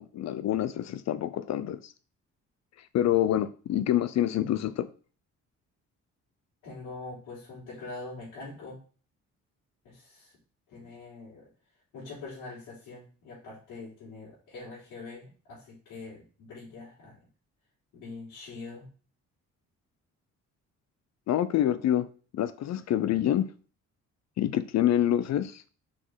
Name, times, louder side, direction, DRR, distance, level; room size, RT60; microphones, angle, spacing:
voice 1, 0.0-1.9 2.8-4.9 21.3-22.1 22.3-23.5 24.4-25.6, left 11 dB, 60° left, 0.5 m, -27 dB
voice 2, 6.6-8.8 9.8-10.4 10.7-11.5 11.9-17.2 17.9-18.9, left 3 dB, 85° left, 3.7 m, -43 dB
6.1 x 4.0 x 4.6 m
cardioid pair, 90°, 30 cm